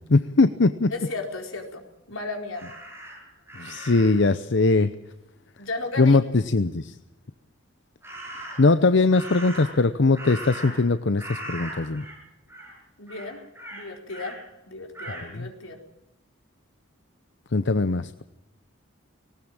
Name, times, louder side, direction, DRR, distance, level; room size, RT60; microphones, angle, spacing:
voice 1, 0.1-0.9 3.6-4.9 6.0-6.9 8.6-12.0 15.4-15.5 17.5-18.2, left 3 dB, 60° left, 12 dB, 0.7 m, -21 dB
voice 2, 0.9-1.8 2.1-2.6 5.6-6.2 13.0-13.4 13.7-14.4 14.7-15.8, left 3 dB, 80° left, 3 dB, 4.5 m, -34 dB
Crow, 2.5-4.3 8.0-8.8 9.1-10.9 11.2-12.2 12.5-12.8 13.1-14.4 14.9-15.3, right 1 dB, 10° right, 7.3 m, -39 dB
19.0 x 18.5 x 8.9 m, 0.95 s
head